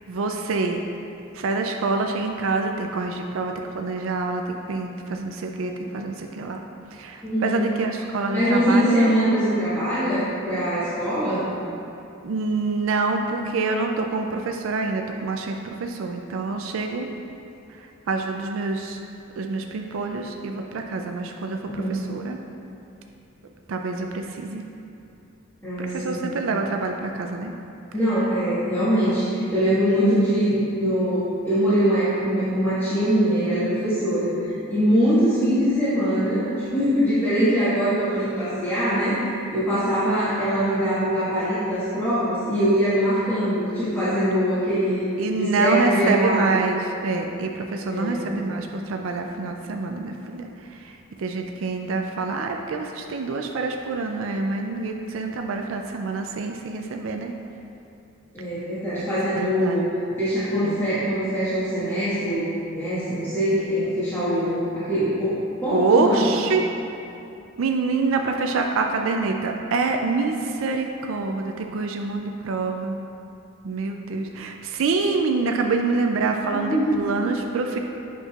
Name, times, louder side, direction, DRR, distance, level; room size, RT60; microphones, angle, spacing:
voice 1, 0.1-0.8 1.3-6.6 6.9-9.2 12.2-17.1 17.8-19.0 19.4-22.4 23.7-24.7 25.8-27.5 45.2-57.3 59.3-59.9 60.6-60.8 64.3-64.6 65.7-66.6 67.6-73.0 73.6-77.8, right 3 dB, 70° right, 3 dB, 0.4 m, -26 dB
voice 2, 7.2-7.7 8.3-11.4 21.7-22.0 25.6-26.3 27.9-39.2 39.5-45.1 45.4-46.6 47.9-48.3 58.3-59.8 60.2-66.3 76.5-77.0, equal, 10° left, -14 dB, 1.5 m, -23 dB
8.0 x 6.1 x 2.4 m, 2.8 s
head